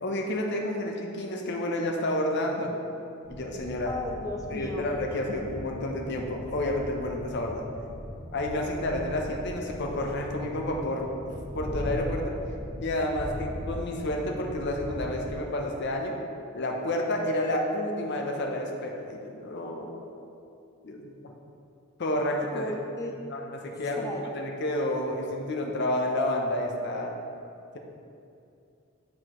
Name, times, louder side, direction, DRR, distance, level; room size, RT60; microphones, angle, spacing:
voice 1, 0.0-2.7 3.3-3.9 4.5-7.6 8.3-12.3 12.8-16.2 16.5-20.1 20.8-21.1 22.0-22.7 23.0-24.1 24.3-27.2, left 1 dB, 55° left, 1 dB, 0.7 m, -30 dB
sound 1, 3.2-15.3, equal, 50° right, 1.5 m, -39 dB
voice 2, 3.9-4.9 22.5-23.2 23.7-24.3, left 2 dB, 15° left, 1 dB, 0.4 m, -36 dB
8.4 x 4.8 x 3.0 m, 2.6 s
head